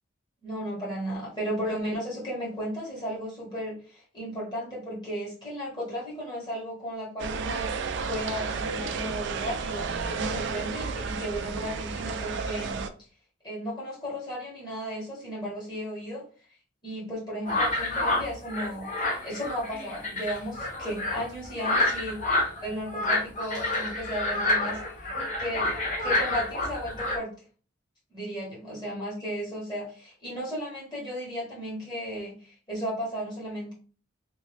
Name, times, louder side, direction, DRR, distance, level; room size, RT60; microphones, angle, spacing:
voice 1, 0.4-7.7 8.1-12.8 13.4-16.2 16.8-18.9 19.2-24.8 25.4-27.3 28.1-33.7, equal, 20° left, -6 dB, 1.6 m, -34 dB
sound 1, 7.2-12.9, right 5 dB, 60° right, 0.4 m, -32 dB
sound 2, 17.5-27.2, left 2 dB, 35° left, 0.9 m, -28 dB
3.0 x 2.8 x 3.4 m, 0.40 s
head